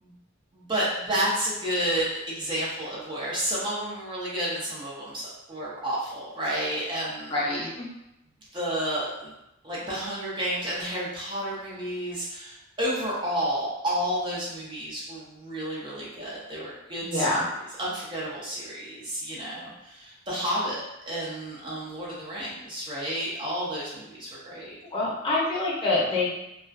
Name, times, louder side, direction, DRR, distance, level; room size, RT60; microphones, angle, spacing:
voice 1, 0.5-7.3 8.5-9.3 9.6-17.3 17.8-20.8 21.1-24.8, right 1 dB, 25° right, -6 dB, 0.5 m, -31 dB
voice 2, 7.3-7.9 17.0-17.4 24.9-26.3, left 2 dB, 25° left, -6 dB, 0.7 m, -26 dB
2.3 x 2.2 x 2.4 m, 0.88 s
head